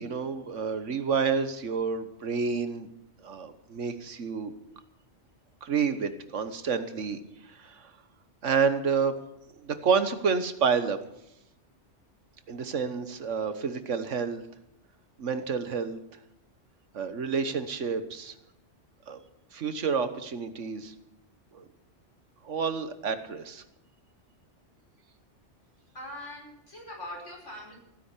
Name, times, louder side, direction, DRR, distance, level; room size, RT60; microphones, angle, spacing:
voice 1, 0.0-2.9 3.2-4.5 5.6-7.2 7.5-7.9 8.4-9.1 9.6-11.0 12.5-14.4 15.2-16.0 16.9-18.3 19.1-19.2 19.5-20.9 21.5-21.6 22.4-23.6, right 5 dB, 85° right, 10 dB, 1.6 m, -29 dB
voice 2, 25.9-27.8, left 1 dB, 85° left, -1 dB, 5.4 m, -42 dB
16.0 x 10.0 x 8.3 m, 0.82 s
omnidirectional pair, 1.2 m